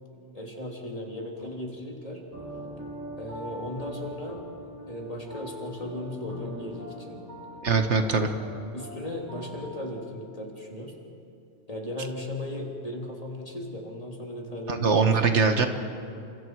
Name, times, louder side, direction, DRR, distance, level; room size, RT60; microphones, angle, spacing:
voice 1, 0.3-2.2 3.2-7.2 8.7-11.0 11.7-15.1, left 1 dB, 30° left, 0 dB, 3.1 m, -36 dB
sound 1, 2.3-9.8, equal, 15° right, 6.4 m, -42 dB
voice 2, 7.6-8.3 14.7-15.7, right 4 dB, 75° right, 6 dB, 1.7 m, -22 dB
29.5 x 27.5 x 4.7 m, 2.5 s
omnidirectional pair, 1.2 m